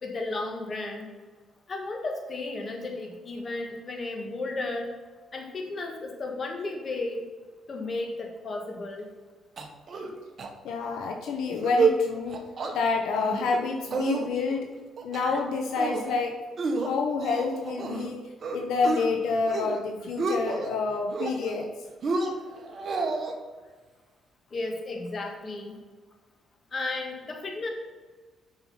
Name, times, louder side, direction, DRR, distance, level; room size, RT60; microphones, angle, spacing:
voice 1, 0.0-1.1 1.7-4.9 5.3-7.2 7.7-9.1 24.5-25.8 26.7-27.7, left 2 dB, 40° left, 2 dB, 1.6 m, -34 dB
sound 1, 9.6-10.1 10.4-10.5 10.8-11.1 11.5-12.0 12.3-12.7 13.1-13.6 13.9-14.6 15.0-15.4 15.8-16.2 16.6-18.1 18.4-19.0 19.4-19.8 20.0-20.7 21.1-21.7 22.0-23.3, right 4 dB, 50° right, 1.2 m, -29 dB
voice 2, 10.6-12.4 12.7-14.7 15.0-16.4 16.8-18.2 18.5-21.7, left 4 dB, 80° left, 3 dB, 0.8 m, -28 dB
7.7 x 5.8 x 4.1 m, 1.4 s
cardioid pair, 90°, 0 cm